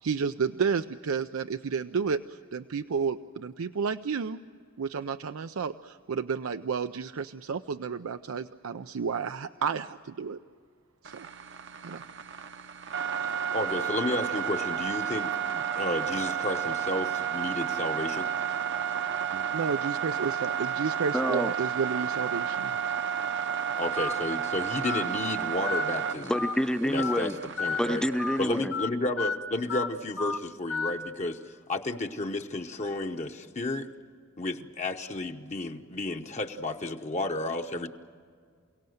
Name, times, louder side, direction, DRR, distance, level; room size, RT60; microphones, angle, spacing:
voice 1, 0.0-4.4 4.8-10.4 11.0-11.3 11.8-12.0 19.3-22.7, right 6 dB, 90° right, 9 dB, 0.5 m, -31 dB
sound 1, 11.0-28.6, right 8 dB, 60° right, 0.9 m, -32 dB
voice 2, 13.5-18.3 23.8-26.3 26.8-27.3 27.6-28.0 28.4-31.4 31.7-33.9 34.4-37.9, left 2 dB, 35° left, 4 dB, 0.9 m, -32 dB
voice 3, 21.1-21.5 26.2-27.4 27.8-28.7, equal, 5° left, 11 dB, 0.6 m, -28 dB
Telephone, 24.0-24.1 24.8-25.0 25.7-25.8 26.3-26.5 27.0-27.2 27.6-27.8 28.2-28.4 28.7-28.9 29.2-29.3 29.7-29.9 30.2-30.4 30.7-30.9, left 5 dB, 70° left, 1.1 m, -31 dB
28.5 x 17.5 x 7.9 m, 2.1 s
head